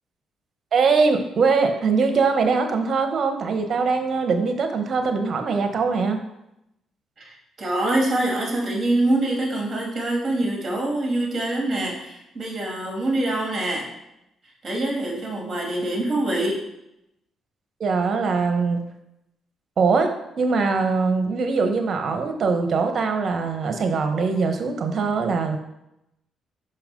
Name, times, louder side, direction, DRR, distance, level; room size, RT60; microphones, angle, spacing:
voice 1, 0.7-6.2 17.8-18.8 19.8-25.6, right 4 dB, 50° right, 6 dB, 1.1 m, -22 dB
voice 2, 7.2-13.9 14.6-16.6, right 1 dB, 35° right, -1 dB, 3.0 m, -25 dB
5.8 x 5.7 x 5.3 m, 0.85 s
cardioid pair, 90°, 0 cm